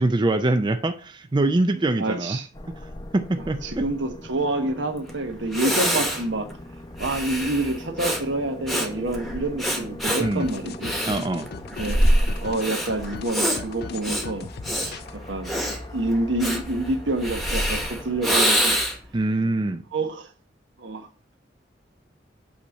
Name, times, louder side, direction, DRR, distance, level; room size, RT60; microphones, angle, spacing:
voice 1, 0.0-2.4 3.1-3.6 10.2-10.5 11.1-11.5 19.1-19.8, right 2 dB, 25° right, 0.4 m, -23 dB
voice 2, 2.0-2.5 3.4-6.5 7.0-10.9 11.8-12.1 12.4-15.6 15.9-18.8 19.4-19.5 19.9-20.3 20.8-21.1, right 2 dB, 75° right, 1.1 m, -28 dB
sound 1, 2.5-18.3, left 1 dB, 25° left, 0.6 m, -42 dB
Breathing, 5.1-5.2 5.5-19.1, equal, ahead, 1.1 m, -26 dB
sound 2, 10.1-15.2, left 5 dB, 60° left, 0.4 m, -38 dB
8.3 x 2.9 x 6.2 m
head